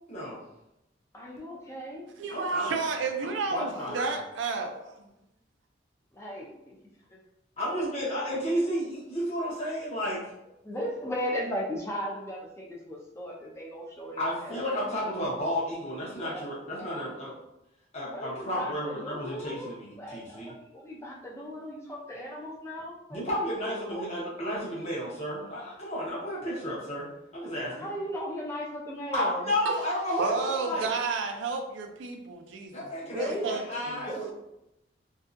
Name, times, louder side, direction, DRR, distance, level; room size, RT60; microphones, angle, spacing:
voice 1, 0.1-0.4 2.3-2.8 3.2-4.1 7.6-10.2 14.2-17.3 17.9-20.5 23.1-27.1 27.3-27.9 29.1-30.9 32.7-34.3, equal, 35° left, -6 dB, 0.9 m, -32 dB
voice 2, 1.1-2.0 3.7-4.1 6.1-6.7 10.6-15.6 16.2-16.5 16.8-17.3 18.0-19.7 20.0-23.5 23.9-24.1 27.7-29.5 33.1-33.6 34.1-34.2, equal, 15° left, -2 dB, 0.4 m, -37 dB
voice 3, 2.2-5.1 29.6-29.8 30.2-34.0, right 4 dB, 85° right, 5 dB, 0.4 m, -32 dB
2.6 x 2.3 x 2.4 m, 0.86 s
head